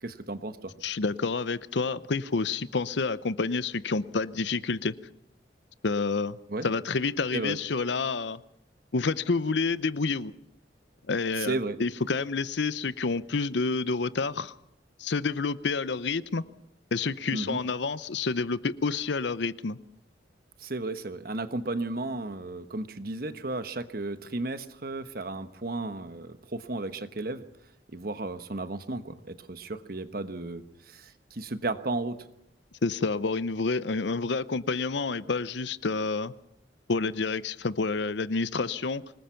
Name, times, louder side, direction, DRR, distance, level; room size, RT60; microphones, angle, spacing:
voice 1, 0.0-0.7 6.5-6.7 7.3-7.6 11.4-11.8 17.3-17.6 20.6-27.4 27.9-32.2, right 2 dB, 50° right, 10 dB, 1.2 m, -34 dB
voice 2, 0.8-4.9 5.8-6.4 6.6-8.4 8.9-10.3 11.1-14.5 15.0-16.4 16.9-19.8 32.8-36.3 36.9-39.0, left 4 dB, 70° left, 16 dB, 0.7 m, -29 dB
25.0 x 20.0 x 5.8 m, 0.79 s
head